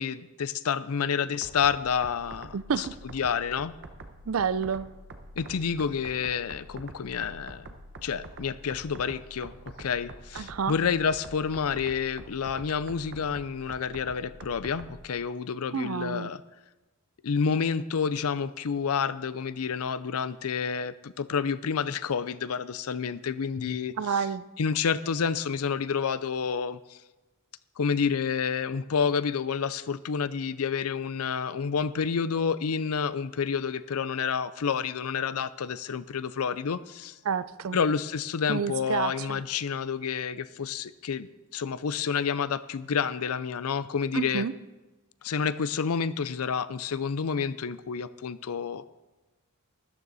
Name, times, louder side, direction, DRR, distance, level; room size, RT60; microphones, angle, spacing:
voice 1, 0.0-2.9 3.1-3.7 5.4-7.7 8.0-9.5 9.8-16.4 17.2-24.2 24.6-27.0 27.8-37.2 37.7-44.5 45.2-48.8, left 6 dB, 80° left, 15 dB, 0.5 m, -29 dB
sound 1, 1.4-15.0, right 2 dB, 55° right, 1.0 m, -46 dB
voice 2, 2.5-2.9 4.3-4.9 10.4-10.7 15.7-16.3 24.0-24.4 37.2-37.8 38.5-39.4 44.1-44.5, right 6 dB, 70° right, 16 dB, 0.5 m, -29 dB
13.0 x 12.0 x 4.1 m, 1.1 s
head